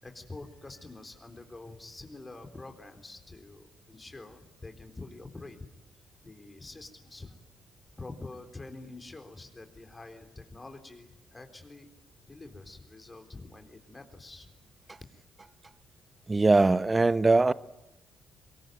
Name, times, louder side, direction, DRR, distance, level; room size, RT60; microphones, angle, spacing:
voice 1, 0.0-5.6 6.2-7.4 8.0-11.9 12.3-14.5, left 2 dB, 25° left, 3.7 m, -46 dB
voice 2, 16.3-17.5, right 3 dB, 25° right, 0.9 m, -21 dB
24.0 x 22.0 x 9.2 m
hypercardioid pair, 45°, 0 cm